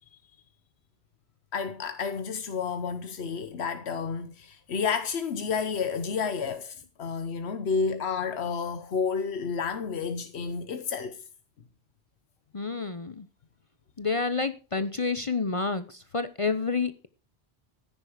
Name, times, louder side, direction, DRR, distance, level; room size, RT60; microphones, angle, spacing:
voice 1, 1.5-11.2, left 5 dB, 90° left, 1.2 m, -31 dB
voice 2, 12.5-13.3 14.0-17.1, left 4 dB, 35° left, 0.8 m, -29 dB
14.5 x 9.9 x 4.9 m
omnidirectional pair, 1.1 m